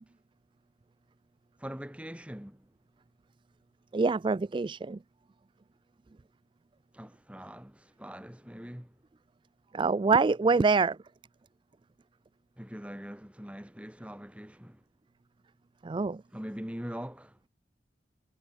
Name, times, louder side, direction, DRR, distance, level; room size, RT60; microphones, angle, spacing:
voice 1, 1.6-2.7 6.9-9.0 12.6-14.8 16.3-17.4, equal, 5° right, 1.7 m, -42 dB
voice 2, 3.9-5.0 9.7-11.0 15.8-16.2, right 4 dB, 25° right, 0.3 m, -25 dB
head